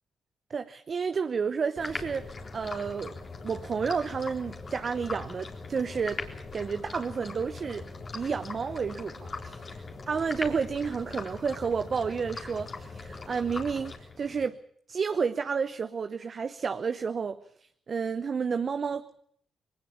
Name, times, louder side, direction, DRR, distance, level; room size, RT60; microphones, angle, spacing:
voice 1, 0.5-6.2 6.5-7.9 8.1-9.6 10.1-14.6 14.9-19.2, right 5 dB, 50° right, 0.9 m, -31 dB
sound 1, 1.8-14.5, left 3 dB, 50° left, 4.0 m, -40 dB
21.5 x 19.5 x 7.1 m
hypercardioid pair, 50°, 0 cm